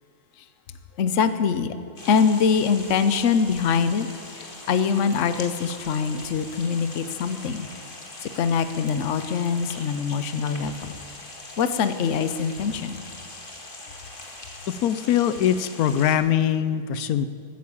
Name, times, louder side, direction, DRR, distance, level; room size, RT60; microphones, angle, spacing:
voice 1, 1.0-1.7 2.1-4.1 4.7-7.7 8.2-10.7 11.6-13.0, left 6 dB, 60° left, 11 dB, 1.1 m, -23 dB
sound 1, 2.0-16.2, left 2 dB, 35° left, 2.0 m, -41 dB
voice 2, 14.7-17.3, left 9 dB, 85° left, 13 dB, 1.2 m, -22 dB
14.0 x 9.6 x 8.6 m, 2.4 s
omnidirectional pair, 1.5 m